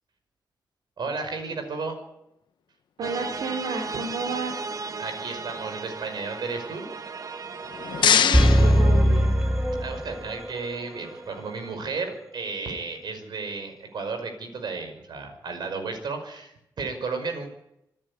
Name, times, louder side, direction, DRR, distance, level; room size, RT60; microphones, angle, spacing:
voice 1, 1.0-1.9 5.0-6.9 9.8-17.5, right 4 dB, 70° right, 6 dB, 5.5 m, -33 dB
sound 1, 3.0-11.7, right 4 dB, 50° right, 1.2 m, -37 dB
voice 2, 3.0-4.5 7.9-9.3, right 3 dB, 90° right, 2 dB, 3.4 m, -31 dB
sound 2, 7.5-9.7, left 8 dB, 80° left, 1.0 m, -25 dB
sound 3, 8.3-10.5 10.8-10.9, equal, 5° right, 0.8 m, -20 dB
26.0 x 11.0 x 9.7 m, 0.84 s
cardioid pair, 100°, 8 cm